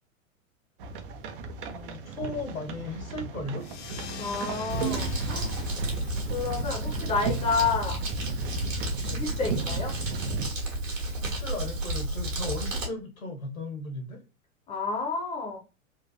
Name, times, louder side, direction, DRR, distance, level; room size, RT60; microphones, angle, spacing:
sound 1, 0.8-10.5, right 4 dB, 40° right, 0.5 m, -35 dB
voice 1, 1.7-3.6 9.0-9.3 11.0-14.2, left 2 dB, 75° left, 2 dB, 1.5 m, -36 dB
sound 2, 3.6-8.7, left 6 dB, 60° left, 0.6 m, -44 dB
voice 2, 4.2-5.5 6.3-8.0 9.1-9.9 14.7-15.6, left 4 dB, 15° left, 1 dB, 0.7 m, -30 dB
Crumpling crinkling, 4.7-12.9, right 1 dB, 65° right, 1.6 m, -32 dB
3.7 x 2.5 x 2.6 m, 0.32 s
figure-of-eight pair, 100°, 41 cm